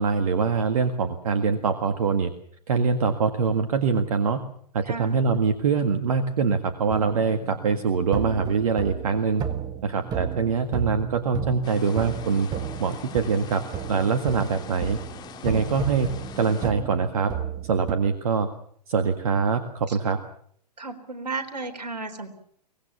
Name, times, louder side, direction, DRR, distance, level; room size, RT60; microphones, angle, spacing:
voice 1, 0.0-2.3 2.7-4.4 4.7-9.4 9.8-12.5 12.8-13.6 13.9-15.0 15.4-16.1 16.4-17.3 17.6-18.5 18.9-20.2, right 5 dB, 60° right, 8 dB, 1.8 m, -24 dB
voice 2, 4.8-5.2 19.9-20.0 20.8-22.3, right 3 dB, 80° right, 7 dB, 3.8 m, -34 dB
sound 1, 6.9-17.9, right 7 dB, 20° right, 1.5 m, -33 dB
sound 2, 11.6-16.7, left 9 dB, 20° left, 2.0 m, -43 dB
24.0 x 19.5 x 7.1 m, 0.63 s
figure-of-eight pair, 115°, 21 cm